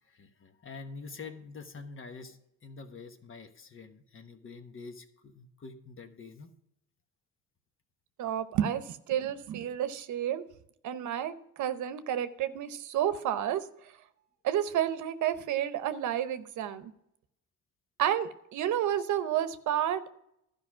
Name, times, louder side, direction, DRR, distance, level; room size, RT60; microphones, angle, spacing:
voice 1, 0.0-6.5, left 4 dB, 45° left, 7 dB, 1.3 m, -46 dB
voice 2, 8.2-10.4 10.8-13.6 14.4-16.9 18.0-20.0, right 10 dB, 75° right, 11 dB, 0.8 m, -30 dB
12.5 x 5.2 x 6.1 m, 0.76 s
cardioid pair, 90°, 30 cm